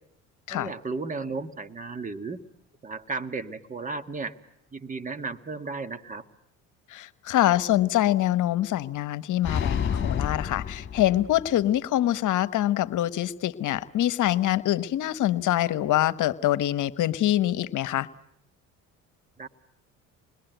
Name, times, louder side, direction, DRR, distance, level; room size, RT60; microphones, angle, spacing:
voice 1, 0.5-2.4 2.8-4.3 4.7-6.2 19.4-19.5, right 3 dB, 25° right, 10 dB, 1.6 m, -34 dB
voice 2, 6.9-18.1, left 13 dB, 60° left, 15 dB, 1.2 m, -25 dB
sound 1, 9.4-11.6, left 7 dB, 35° left, 2.4 m, -29 dB
27.0 x 21.5 x 9.2 m, 0.73 s
supercardioid pair, 80°, 34 cm